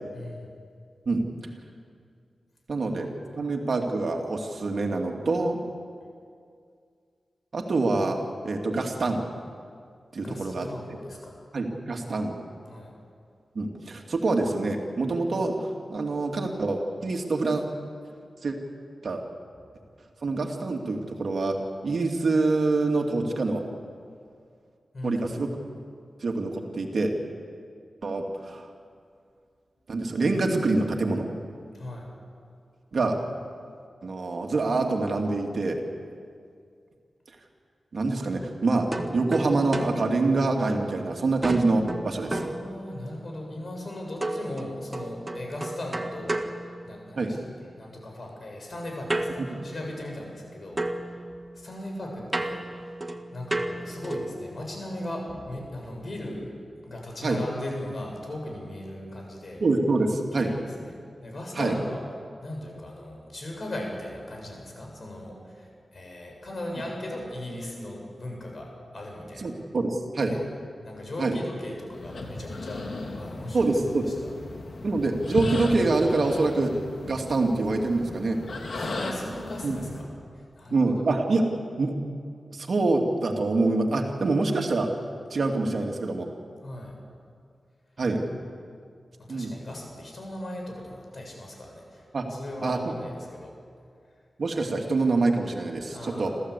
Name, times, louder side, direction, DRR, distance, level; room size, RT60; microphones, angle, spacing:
voice 1, 0.1-0.5 3.0-3.5 10.2-11.4 12.7-12.9 24.9-25.5 31.7-32.1 42.3-47.4 47.8-50.8 51.1-51.2 51.5-52.9 53.3-56.5 56.8-59.6 60.3-62.0 62.4-69.5 70.2-70.4 70.8-74.3 78.7-80.1 80.3-81.0 86.6-87.0 89.2-93.6 95.9-96.4, left 1 dB, 55° left, 1 dB, 7.2 m, -38 dB
voice 2, 2.7-3.1 3.3-5.6 7.5-8.2 8.4-9.2 10.1-11.0 11.5-12.4 13.5-15.5 15.9-17.6 18.4-18.6 19.0-19.2 20.2-21.6 21.8-23.6 25.0-25.5 26.2-27.1 28.0-28.7 29.9-31.2 32.9-33.2 34.0-35.8 37.9-38.9 39.1-42.4 47.2-47.3 57.2-57.4 59.6-60.5 61.6-61.7 69.4-70.3 71.2-71.3 73.5-74.1 74.8-76.7 77.0-78.4 79.6-79.8 80.7-81.5 81.8-82.0 82.5-84.9 85.3-86.3 88.0-88.2 89.3-89.6 92.1-92.3 92.6-92.8 94.4-96.3, right 3 dB, 65° right, 2 dB, 2.7 m, -25 dB
sound 1, 38.9-41.0 41.4-43.3 44.2-47.4 49.1-50.5 50.8-54.4, right 2 dB, 25° right, 1.8 m, -34 dB
sound 2, 71.9-80.0, left 2 dB, 75° left, 3.1 m, -35 dB
27.5 x 15.0 x 8.4 m, 2.3 s
cardioid pair, 55°, 0 cm